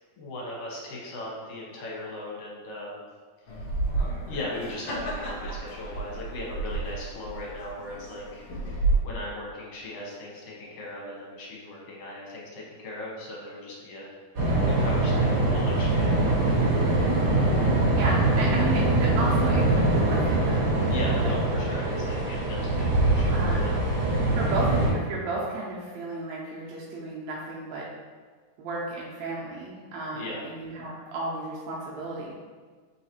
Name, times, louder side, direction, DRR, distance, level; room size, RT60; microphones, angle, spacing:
voice 1, 0.2-3.0 4.3-14.1 14.7-16.3 20.9-23.7 24.1-24.2 30.1-30.4, left 1 dB, 65° left, -4 dB, 1.6 m, -38 dB
sound 1, 3.5-9.0, right 3 dB, 85° left, 1.3 m, -31 dB
sound 2, 14.3-24.9, right 2 dB, 60° right, 1.6 m, -23 dB
voice 2, 17.9-20.7 21.2-21.3 21.7-21.8 23.3-23.7 24.4-27.9 28.6-32.3, right 2 dB, 80° right, -5 dB, 1.7 m, -33 dB
3.9 x 3.9 x 2.9 m, 1.5 s
omnidirectional pair, 3.7 m